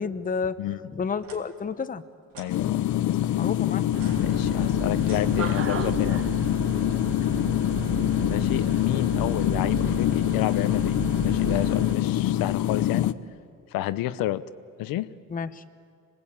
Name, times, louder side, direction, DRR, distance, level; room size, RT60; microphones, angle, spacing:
voice 1, 0.0-0.6 0.9-2.0 3.4-3.9 15.3-15.6, left 5 dB, 25° left, 11 dB, 0.9 m, -30 dB
sound 1, 1.2-1.4 2.3-2.6 3.9-5.9, right 4 dB, 80° right, 3.2 m, -48 dB
voice 2, 2.4-3.2 4.2-6.2 8.3-13.2 13.7-14.4 14.8-15.1, left 14 dB, 90° left, 13 dB, 0.8 m, -30 dB
sound 2, 2.5-13.1, left 13 dB, 60° left, 0.8 m, -25 dB
sound 3, 3.9-11.9, right 7 dB, 40° right, 1.2 m, -34 dB
26.5 x 19.5 x 8.8 m, 2.3 s
cardioid pair, 125°, 33 cm